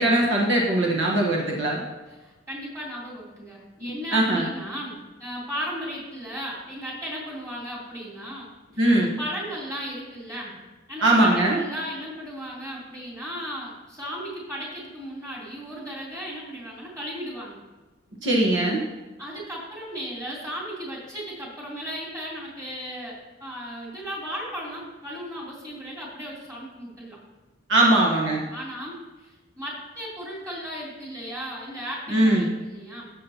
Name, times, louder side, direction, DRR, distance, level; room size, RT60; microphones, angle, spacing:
voice 1, 0.0-1.8 3.8-4.5 8.8-9.1 11.0-11.6 18.2-18.8 27.7-28.4 32.1-32.5, right 1 dB, 70° right, -2 dB, 1.3 m, -21 dB
voice 2, 2.1-8.5 8.7-8.8 9.2-10.5 10.9-17.6 19.2-27.2 28.5-33.1, equal, 15° right, -5 dB, 3.1 m, -36 dB
12.5 x 7.5 x 2.9 m, 1.2 s
head